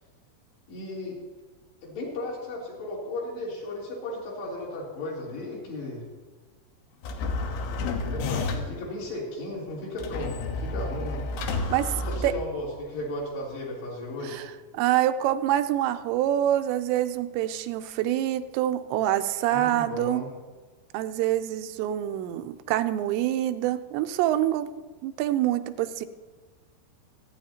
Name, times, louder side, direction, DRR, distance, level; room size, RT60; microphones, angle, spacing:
voice 1, 0.7-1.2 1.8-6.0 8.0-11.3 12.0-14.4 19.5-20.3, left 1 dB, 70° left, -5 dB, 5.4 m, -35 dB
sound 1, 7.0-8.9 10.0-12.8, left 3 dB, 90° left, 3.3 m, -31 dB
voice 2, 14.7-20.2 20.9-24.7 25.0-26.1, right 12 dB, 90° right, 9 dB, 2.9 m, -26 dB
26.5 x 9.7 x 2.8 m, 1.3 s
omnidirectional pair, 5.0 m